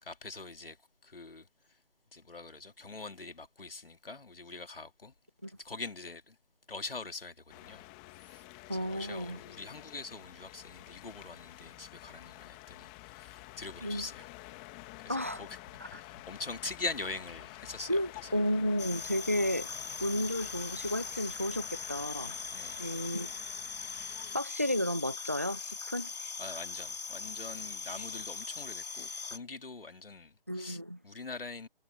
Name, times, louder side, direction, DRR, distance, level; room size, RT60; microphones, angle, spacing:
voice 1, 0.0-0.8 1.0-1.5 2.1-5.1 5.6-6.4 6.7-7.9 8.2-8.5 8.7-14.3 14.8-15.6 15.8-18.3 22.5-22.8 24.2-24.4 26.4-31.7, left 3 dB, 70° left, 2.4 m, -43 dB
sound 1, 7.5-24.4, left 22 dB, 5° left, 1.5 m, -50 dB
voice 2, 8.7-9.4 13.8-14.1 15.1-15.4 15.8-16.0 17.9-19.7 20.0-22.4 22.8-23.3 24.3-26.1 30.5-31.0, left 1 dB, 15° right, 0.6 m, -32 dB
sound 2, 18.8-29.4, left 5 dB, 45° left, 2.1 m, -40 dB
figure-of-eight pair, 165°, 29 cm